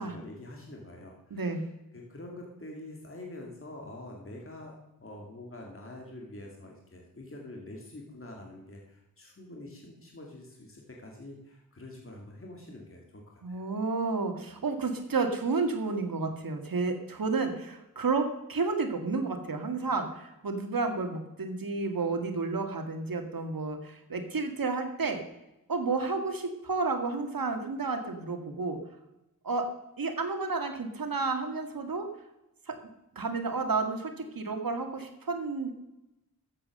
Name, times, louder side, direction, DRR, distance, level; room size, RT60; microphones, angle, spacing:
voice 1, 0.0-1.7 1.9-13.7, left 1 dB, 35° left, 0 dB, 2.5 m, -46 dB
voice 2, 1.3-1.6 13.4-25.2 25.7-28.8 29.4-29.7 30.0-32.1 32.7-32.8 33.2-35.7, right 4 dB, 70° right, 5 dB, 2.0 m, -31 dB
13.5 x 8.5 x 6.5 m, 0.92 s
wide cardioid pair, 85°, 35 cm